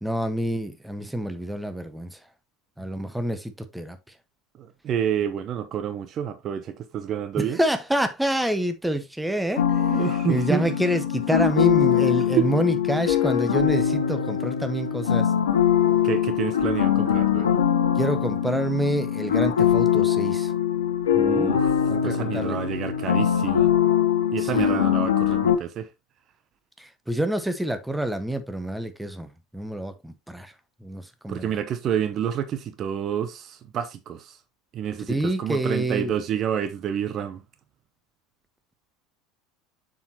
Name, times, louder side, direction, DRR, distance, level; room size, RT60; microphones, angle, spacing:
voice 1, 0.0-2.2 2.8-4.0 7.4-10.0 10.3-15.3 18.0-20.5 21.2-21.5 21.9-22.6 24.4-25.0 26.8-30.5 30.8-31.5 35.1-36.2, right 1 dB, 5° right, 1.1 m, -27 dB
voice 2, 4.6-7.6 9.9-10.7 12.4-12.5 16.0-17.6 21.1-21.8 22.0-23.7 24.3-25.9 31.3-34.4 34.7-37.4, right 9 dB, 40° right, 0.8 m, -28 dB
sound 1, 9.6-25.5, left 9 dB, 75° left, 1.1 m, -22 dB
7.1 x 6.4 x 2.8 m
figure-of-eight pair, 75°, 0 cm